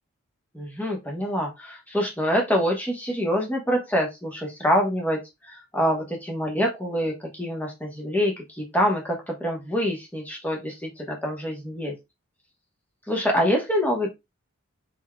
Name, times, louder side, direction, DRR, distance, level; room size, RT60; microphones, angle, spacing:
voice 1, 0.5-11.9 13.1-14.1, equal, 5° left, -1 dB, 1.1 m, -26 dB
4.4 x 4.4 x 2.3 m, 0.22 s
head